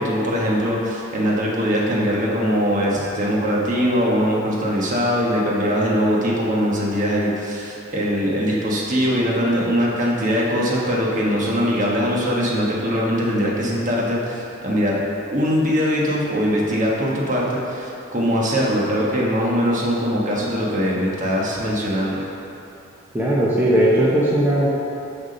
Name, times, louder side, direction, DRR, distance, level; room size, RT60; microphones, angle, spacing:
voice 1, 0.0-15.0 15.3-22.2, equal, 40° right, -4 dB, 1.3 m, -21 dB
voice 2, 23.1-24.7, right 1 dB, 10° right, -7 dB, 0.9 m, -18 dB
6.6 x 6.0 x 5.4 m, 2.9 s
head